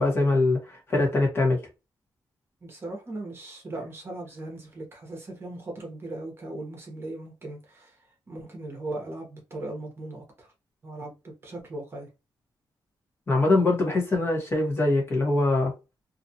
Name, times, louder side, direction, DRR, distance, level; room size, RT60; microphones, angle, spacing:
voice 1, 0.0-1.6 13.3-15.7, left 2 dB, 30° left, 1.0 m, -23 dB
voice 2, 2.6-10.5 10.8-12.1, right 2 dB, 30° right, 0.9 m, -38 dB
2.6 x 2.3 x 2.7 m
wide cardioid pair, 160°, 8 cm